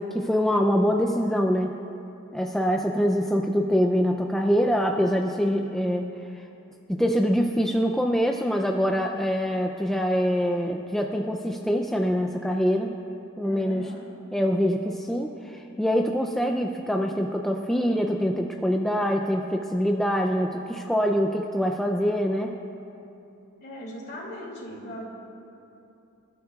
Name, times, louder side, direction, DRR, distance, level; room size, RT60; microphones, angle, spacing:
voice 1, 0.0-1.7 2.3-6.1 6.3-6.4 6.9-12.9 13.4-13.9 14.3-22.6, equal, ahead, 1 dB, 0.4 m, -24 dB
voice 2, 13.4-14.1 23.6-25.0, equal, 45° left, -3 dB, 2.6 m, -39 dB
27.0 x 13.0 x 2.3 m, 2.8 s
head